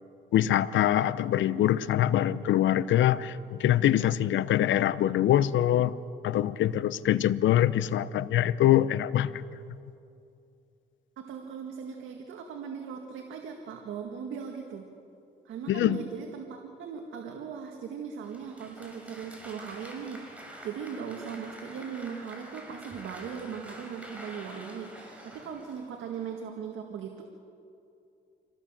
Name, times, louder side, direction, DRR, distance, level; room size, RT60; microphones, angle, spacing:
voice 1, 0.3-5.9 6.2-9.4 15.7-16.0, left 12 dB, 70° left, 16 dB, 0.7 m, -24 dB
voice 2, 11.2-14.9 15.5-27.2, right 7 dB, 80° right, 3 dB, 1.9 m, -39 dB
Applause, 18.2-26.3, equal, 5° right, 6.1 m, -47 dB
26.0 x 17.5 x 7.5 m, 2.7 s
cardioid pair, 90°, 20 cm